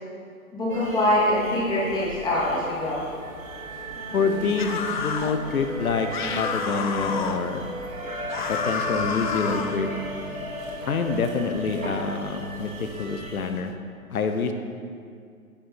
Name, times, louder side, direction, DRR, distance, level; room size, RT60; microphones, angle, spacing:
voice 1, 0.5-3.0, left 1 dB, 10° left, -7 dB, 2.6 m, -24 dB
sound 1, 0.7-13.5, right 1 dB, 65° right, 2.7 m, -36 dB
voice 2, 4.1-6.1 6.4-7.7 8.5-9.9 10.9-13.7 14.1-14.5, left 4 dB, 75° left, 6 dB, 1.1 m, -26 dB
sound 2, 4.6-5.4 6.1-7.4 8.3-9.8, left 7 dB, 35° left, 0.6 m, -30 dB
10.0 x 9.5 x 4.4 m, 2.3 s
hypercardioid pair, 130°, 44 cm